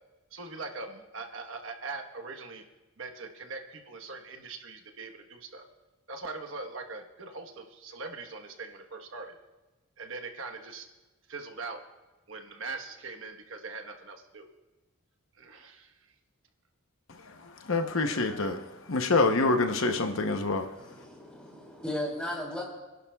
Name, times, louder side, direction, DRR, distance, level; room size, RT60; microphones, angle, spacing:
voice 1, 0.3-2.6 3.0-5.7 6.1-9.3 10.0-10.9 11.3-11.8 12.3-14.5 15.3-16.0, right 3 dB, 60° right, 1.2 m, -41 dB
voice 2, 17.6-18.6 18.9-20.7, left 3 dB, 65° left, 0.8 m, -26 dB
voice 3, 20.7-22.6, left 1 dB, 5° left, 3.1 m, -36 dB
29.0 x 11.5 x 2.3 m
head